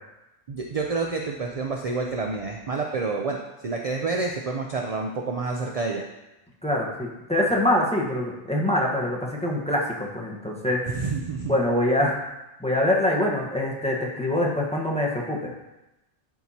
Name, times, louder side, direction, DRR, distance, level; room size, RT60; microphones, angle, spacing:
voice 1, 0.5-6.1 10.9-11.5, right 3 dB, 50° right, 1 dB, 0.4 m, -28 dB
voice 2, 6.6-10.8 11.4-12.2 12.6-15.5, left 1 dB, 5° left, -3 dB, 1.1 m, -24 dB
11.5 x 4.6 x 2.8 m, 0.95 s
omnidirectional pair, 1.3 m